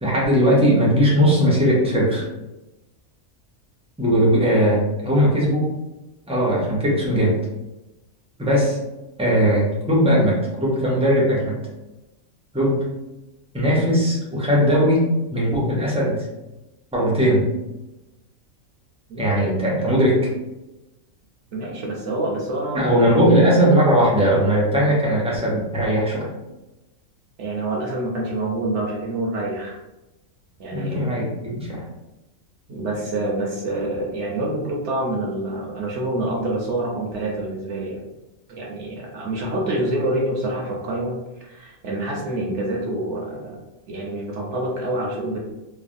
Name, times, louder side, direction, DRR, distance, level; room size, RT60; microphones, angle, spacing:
voice 1, 0.0-2.2 4.0-5.7 6.3-7.4 8.4-8.8 9.2-11.6 12.5-12.8 13.5-16.3 16.9-17.5 19.2-20.3 22.7-26.3 30.7-31.9, equal, 10° right, -5 dB, 0.3 m, -19 dB
voice 2, 19.1-19.5 21.5-23.3 27.4-29.8 30.6-31.1 32.7-38.0 38.5-43.6 43.9-45.4, right 1 dB, 65° right, -1 dB, 0.9 m, -27 dB
3.2 x 2.1 x 2.5 m, 1.0 s
omnidirectional pair, 1.4 m